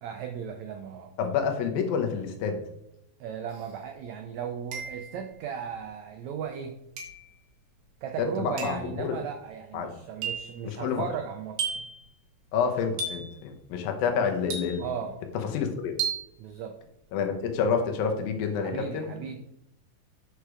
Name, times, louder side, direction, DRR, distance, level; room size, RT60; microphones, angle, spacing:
voice 1, 0.0-1.1 3.2-6.8 8.0-11.9 12.6-12.7 14.8-15.2 16.4-16.8 18.6-19.4, right 7 dB, 85° right, 5 dB, 1.6 m, -36 dB
voice 2, 1.2-2.6 8.2-9.1 9.7-9.9 10.6-11.0 12.5-14.8 15.5-16.0 17.1-19.1, left 6 dB, 85° left, 4 dB, 2.8 m, -28 dB
sound 1, 3.5-3.6 4.7-5.3 7.0-7.3 8.6-8.9 10.2-10.6 11.6-12.0 13.0-13.4 14.5-15.0 16.0-16.3, right 5 dB, 60° right, 1.7 m, -33 dB
6.6 x 6.5 x 4.8 m, 0.80 s
omnidirectional pair, 4.1 m